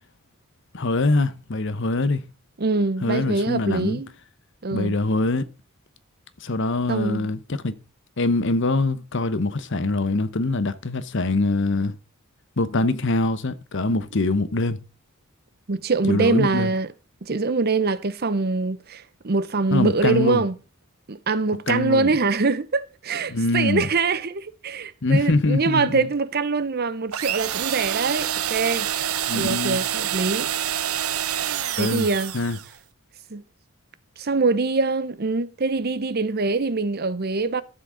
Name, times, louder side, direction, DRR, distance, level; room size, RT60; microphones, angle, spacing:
voice 1, 0.7-2.2 3.0-4.0 4.7-5.5 6.4-7.8 8.2-11.9 12.6-14.8 16.1-16.7 19.7-20.4 21.7-22.1 23.3-23.9 25.0-26.1 29.3-29.8 31.8-32.1 32.3-32.6, left 2 dB, 60° left, 0.9 m, -23 dB
voice 2, 2.6-4.1 4.6-5.0 6.9-7.3 15.7-16.9 17.2-20.6 21.1-28.9 29.3-30.5 31.8-32.3 33.3-33.4 34.2-37.6, right 3 dB, 45° right, 0.8 m, -24 dB
sound 1, 27.1-32.7, right 10 dB, 85° right, 0.8 m, -27 dB
12.5 x 7.4 x 3.8 m
head